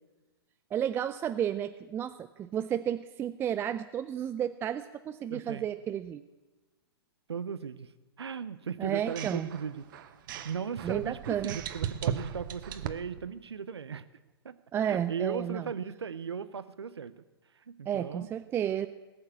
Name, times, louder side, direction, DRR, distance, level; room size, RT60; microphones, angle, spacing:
voice 1, 0.7-6.2 8.8-9.5 10.8-11.6 14.7-15.6 17.9-18.9, right 10 dB, 15° right, 10 dB, 0.4 m, -32 dB
voice 2, 5.3-5.7 7.3-7.9 8.2-9.8 10.3-14.0 14.4-14.6 14.8-17.1 17.6-18.3, right 6 dB, 85° right, 14 dB, 0.7 m, -37 dB
sound 1, 8.9-13.2, right 9 dB, 50° right, 1.0 m, -37 dB
19.0 x 6.6 x 8.5 m, 1.2 s
hypercardioid pair, 120°, 13 cm